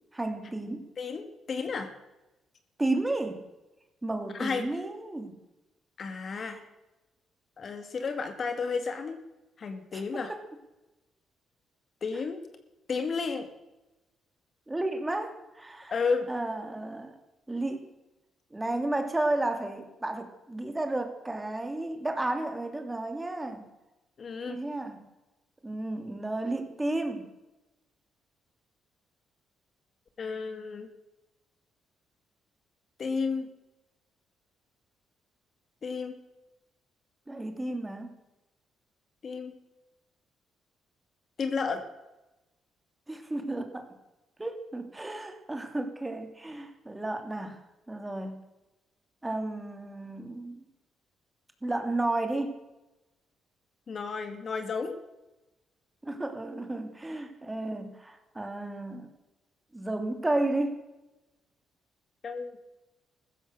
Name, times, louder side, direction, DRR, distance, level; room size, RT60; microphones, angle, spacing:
voice 1, 0.1-0.9 2.8-3.4 4.0-5.4 6.3-6.6 9.9-10.4 14.7-15.9 16.3-17.2 17.5-17.9 18.5-23.7 24.5-25.1 25.6-27.3 37.3-38.1 43.1-43.9 44.4-47.6 47.9-48.4 49.2-50.6 51.6-52.6 56.0-59.1 59.7-60.8, right 2 dB, 15° right, 6 dB, 2.8 m, -32 dB
voice 2, 1.0-1.9 4.3-4.7 6.0-6.6 7.6-9.2 9.6-10.3 12.0-12.4 12.9-13.5 15.9-16.3 24.2-24.6 30.2-30.9 33.0-33.5 35.8-36.2 39.2-39.6 41.4-41.8 53.9-55.0 62.2-62.6, left 5 dB, 45° left, 8 dB, 2.3 m, -32 dB
15.0 x 13.5 x 6.7 m, 0.98 s
cardioid pair, 90°, 0 cm